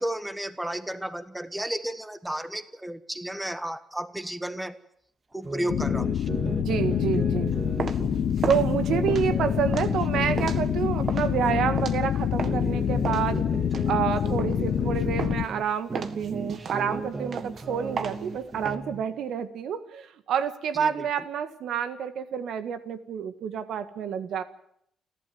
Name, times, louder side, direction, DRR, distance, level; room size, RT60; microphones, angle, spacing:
voice 1, 0.0-4.8 5.3-6.1 20.8-21.1, right 1 dB, 5° right, 12 dB, 1.5 m, -33 dB
sound 1, 5.4-11.9 12.3-15.6 15.9-19.0, right 3 dB, 30° right, 2.0 m, -36 dB
sound 2, 5.7-15.5, left 10 dB, 65° left, 0.8 m, -26 dB
voice 2, 6.6-7.6 8.5-13.4 13.9-24.4, right 8 dB, 75° right, 11 dB, 1.7 m, -28 dB
sound 3, 7.5-12.7 13.0-14.9 15.2-15.6 15.9-18.7, right 6 dB, 55° right, 1.7 m, -35 dB
29.0 x 12.0 x 9.4 m, 0.71 s
cardioid pair, 90°, 0 cm